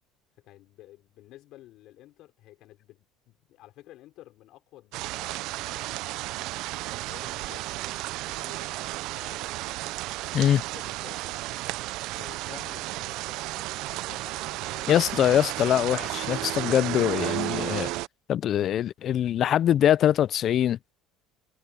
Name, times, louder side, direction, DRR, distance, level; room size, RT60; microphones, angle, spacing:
voice 1, 0.4-6.4 6.8-9.5 10.2-11.4 11.8-15.0, left 15 dB, 60° left, 5.3 m, -52 dB
sound 1, 4.9-18.1, right 19 dB, 65° right, 0.4 m, -33 dB
voice 2, 14.9-17.9 18.3-20.8, left 10 dB, 45° left, 0.4 m, -23 dB
cardioid pair, 130°, 0 cm